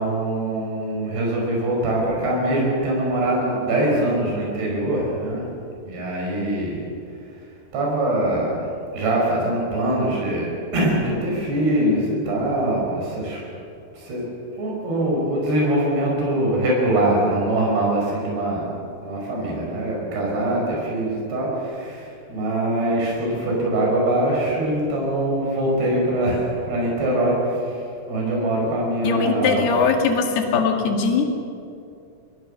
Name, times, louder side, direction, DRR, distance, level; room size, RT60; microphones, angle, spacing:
voice 1, 0.0-5.4 5.9-6.8 7.7-8.6 8.9-10.5 10.7-13.4 14.0-14.2 14.6-18.7 19.0-27.6 28.1-29.7, right 1 dB, 85° right, -2 dB, 7.2 m, -23 dB
voice 2, 29.0-31.3, left 5 dB, 80° left, 3 dB, 4.0 m, -20 dB
26.5 x 20.5 x 6.5 m, 2.5 s
omnidirectional pair, 4.6 m